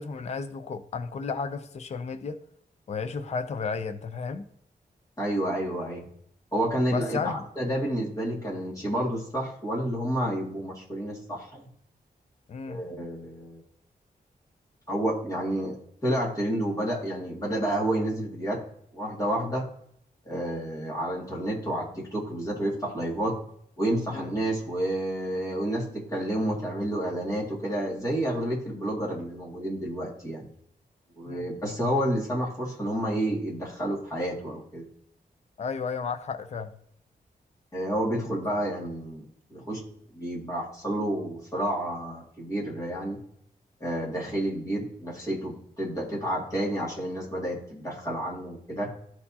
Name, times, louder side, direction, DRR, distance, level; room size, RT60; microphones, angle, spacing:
voice 1, 0.0-2.4 2.9-4.4 6.9-7.4 12.5-12.8 24.1-24.3 31.3-31.5 35.6-36.7, left 5 dB, 45° left, 9 dB, 0.5 m, -33 dB
voice 2, 5.2-6.1 6.5-11.7 12.7-13.6 14.9-18.6 18.9-19.7 20.3-23.4 23.8-30.5 31.2-34.9 37.7-39.8 40.1-43.2 43.8-48.9, right 1 dB, 20° left, -4 dB, 2.1 m, -30 dB
13.0 x 4.5 x 2.8 m, 0.69 s
wide cardioid pair, 175°, 16 cm